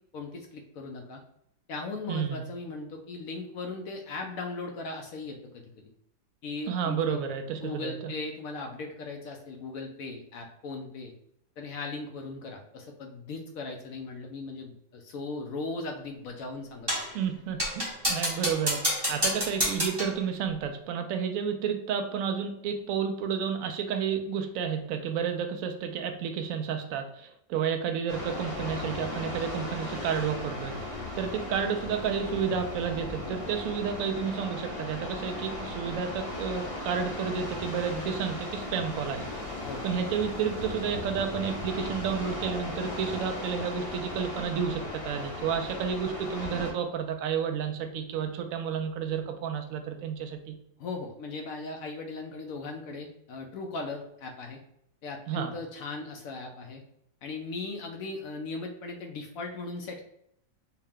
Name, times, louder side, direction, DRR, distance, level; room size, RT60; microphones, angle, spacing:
voice 1, 0.1-1.2 1.7-5.9 6.4-7.2 7.6-11.1 11.6-17.0 39.6-39.9 50.8-54.6 55.0-56.8 57.2-60.0, left 3 dB, 70° left, 3 dB, 0.8 m, -38 dB
voice 2, 2.1-2.4 6.7-8.1 17.1-30.8 31.2-39.3 39.8-50.6 55.3-55.5, right 7 dB, 75° right, 5 dB, 0.8 m, -31 dB
sound 1, 16.9-17.2 17.6-20.2, equal, 20° right, 0.8 m, -29 dB
sound 2, 28.1-46.7, left 2 dB, 35° left, 0.5 m, -37 dB
4.6 x 2.1 x 3.5 m, 0.73 s
omnidirectional pair, 1.9 m